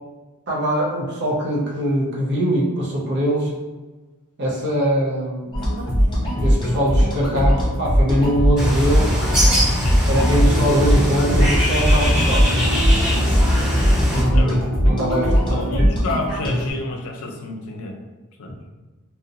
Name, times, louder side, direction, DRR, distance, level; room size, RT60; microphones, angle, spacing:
voice 1, 0.5-3.5 4.4-5.6 6.4-9.2 10.0-12.6 14.1-15.9, equal, 50° right, -4 dB, 0.6 m, -22 dB
sound 1, 5.5-16.7, equal, 20° left, 0.5 m, -20 dB
Bird, 8.6-14.2, equal, 20° right, 1.2 m, -21 dB
voice 2, 9.8-10.3 13.4-13.9 14.3-14.8 15.5-18.0 18.4-18.5, left 2 dB, 75° left, 1 dB, 0.4 m, -30 dB
sound 2, 10.2-15.7, right 1 dB, 90° right, 0.5 m, -32 dB
2.5 x 2.0 x 2.7 m, 1.2 s
head